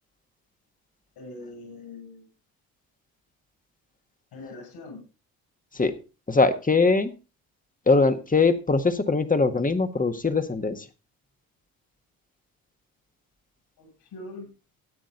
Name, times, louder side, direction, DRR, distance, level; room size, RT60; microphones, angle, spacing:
voice 1, 1.2-2.3 4.3-5.0 13.8-14.5, left 2 dB, 65° left, 3 dB, 7.3 m, -42 dB
voice 2, 6.3-7.1 7.9-10.8, left 3 dB, 20° left, 9 dB, 1.6 m, -22 dB
13.5 x 9.1 x 4.0 m, 0.31 s
hypercardioid pair, 55°, 42 cm